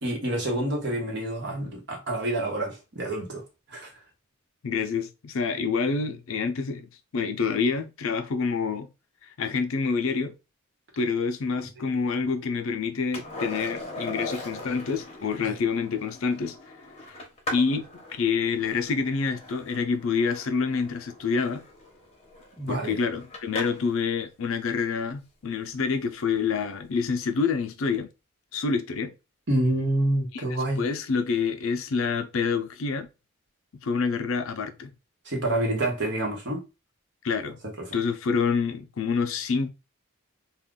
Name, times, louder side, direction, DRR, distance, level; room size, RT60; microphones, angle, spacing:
voice 1, 0.0-3.4 3.7-3.9 15.4-15.6 22.6-23.0 29.5-30.8 35.2-36.6 37.8-37.9, right 1 dB, 55° right, 1.0 m, -27 dB
voice 2, 4.6-8.9 9.4-10.3 11.0-16.6 17.1-17.2 17.5-21.6 22.7-28.1 28.5-29.1 30.3-33.1 33.8-34.9 37.2-37.6 37.9-39.7, left 5 dB, 70° left, 0.5 m, -27 dB
Skateboard, 13.1-24.0 26.6-26.7, left 1 dB, 25° left, 0.8 m, -40 dB
2.4 x 2.3 x 3.6 m
head